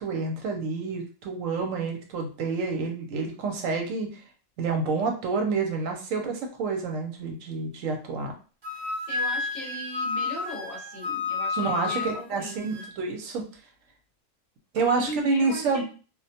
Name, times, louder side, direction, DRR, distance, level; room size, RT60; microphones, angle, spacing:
voice 1, 0.0-4.2 4.6-8.3 11.5-13.4 14.7-15.8, right 4 dB, 80° right, 3 dB, 1.0 m, -28 dB
Wind instrument woodwind instrument, 8.6-12.9, left 4 dB, 45° right, 0.3 m, -31 dB
voice 2, 9.1-12.8 14.8-15.8, left 1 dB, 50° left, -3 dB, 0.8 m, -38 dB
2.3 x 2.2 x 2.7 m, 0.37 s
omnidirectional pair, 1.3 m